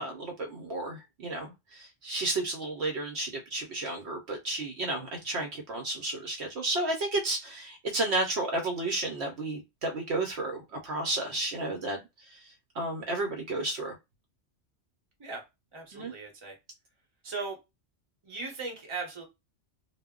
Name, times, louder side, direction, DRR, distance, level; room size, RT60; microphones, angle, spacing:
voice 1, 0.0-12.0 12.3-14.0 15.9-16.1, right 2 dB, 65° right, 2 dB, 0.8 m, -32 dB
voice 2, 15.7-16.6 17.2-17.6 18.2-19.2, right 3 dB, 30° right, 1 dB, 0.8 m, -38 dB
2.2 x 2.0 x 3.5 m, 0.23 s
omnidirectional pair, 1.2 m